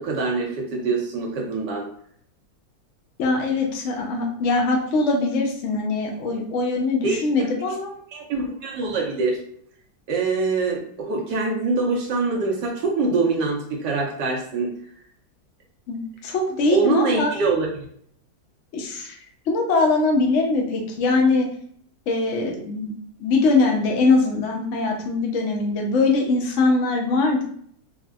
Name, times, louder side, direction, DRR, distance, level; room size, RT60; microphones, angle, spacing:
voice 1, 0.0-1.9 7.0-7.2 8.1-9.4 10.1-14.7 16.7-17.8, right 3 dB, 70° right, -1 dB, 1.2 m, -24 dB
voice 2, 3.2-7.9 15.9-17.3 18.7-19.1 19.5-21.5 22.1-27.4, left 3 dB, 85° left, 1 dB, 0.6 m, -22 dB
4.3 x 2.0 x 2.3 m, 0.62 s
omnidirectional pair, 2.1 m